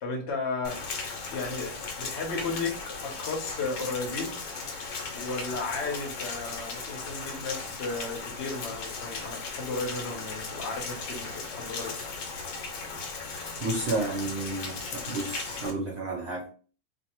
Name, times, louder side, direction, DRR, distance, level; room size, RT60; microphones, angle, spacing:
voice 1, 0.0-0.8 1.3-4.4 5.1-11.9, left 3 dB, 55° left, 1 dB, 0.9 m, -34 dB
Rain, 0.6-15.7, left 4 dB, 75° left, 1.1 m, -37 dB
voice 2, 13.6-16.5, right 2 dB, 60° right, -2 dB, 0.7 m, -31 dB
2.6 x 2.3 x 2.9 m, 0.39 s
omnidirectional pair, 1.7 m